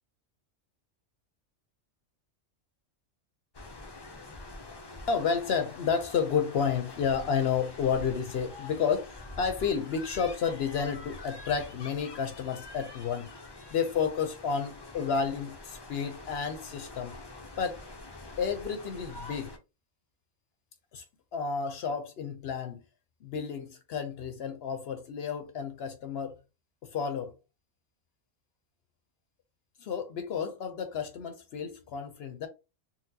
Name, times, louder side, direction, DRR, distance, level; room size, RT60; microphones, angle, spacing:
sound 1, 3.5-19.6, left 2 dB, 40° left, 0.3 m, -46 dB
voice 1, 5.1-13.3 13.7-17.2 17.6-17.8 18.4-19.5 20.9-21.0 21.3-22.8 23.2-26.4 26.8-27.3 29.8-32.5, left 6 dB, 60° left, 0.8 m, -31 dB
4.0 x 2.0 x 2.7 m
omnidirectional pair, 1.3 m